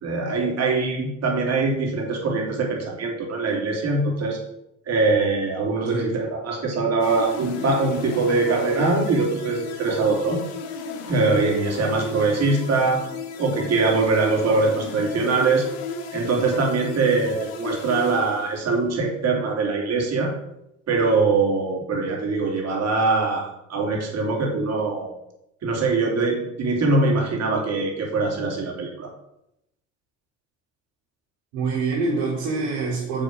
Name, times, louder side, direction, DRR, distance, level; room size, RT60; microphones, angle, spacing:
voice 1, 0.0-4.4 4.9-10.4 11.1-13.0 13.4-15.7 16.1-20.3 20.9-25.1 25.6-29.1, right 3 dB, 55° right, 0 dB, 3.3 m, -22 dB
voice 2, 5.9-6.2 31.5-33.2, right 3 dB, 85° right, -8 dB, 3.3 m, -25 dB
sound 1, 7.0-18.9, left 4 dB, 90° left, 1.3 m, -35 dB
6.9 x 6.4 x 6.3 m, 0.83 s
supercardioid pair, 70°, 31 cm